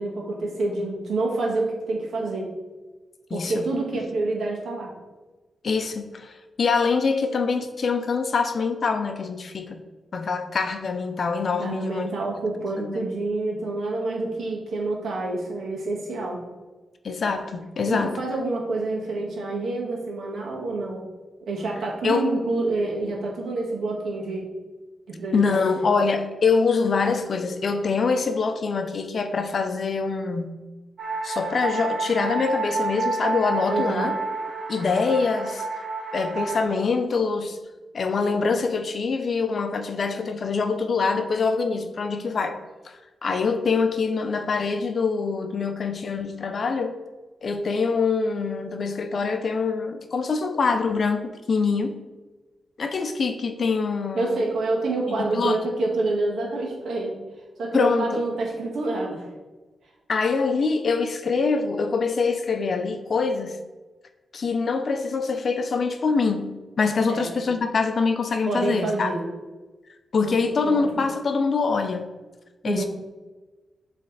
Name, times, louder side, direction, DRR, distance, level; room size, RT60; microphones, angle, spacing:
voice 1, 0.0-2.5 3.3-4.9 11.6-16.4 17.8-21.0 21.4-24.5 25.1-25.6 33.7-34.1 54.1-57.1 57.6-59.2 66.9-67.2 68.4-69.2 70.2-70.3 70.6-70.8 72.6-72.9, right 2 dB, 75° right, -1 dB, 1.5 m, -27 dB
voice 2, 3.3-3.7 5.6-9.8 10.1-12.1 12.8-13.1 17.0-18.2 22.0-22.3 25.3-30.5 31.2-34.1 34.7-35.6 36.1-37.6 37.9-42.6 42.8-46.9 47.4-51.2 51.5-52.0 52.8-54.4 55.1-55.6 57.7-58.2 60.1-63.6 64.3-69.1 70.1-72.1 72.6-72.9, left 4 dB, 50° left, 7 dB, 0.6 m, -24 dB
sound 1, 31.0-36.6, right 4 dB, 50° right, 1.0 m, -29 dB
7.4 x 3.3 x 4.0 m, 1.2 s
wide cardioid pair, 120°, 0 cm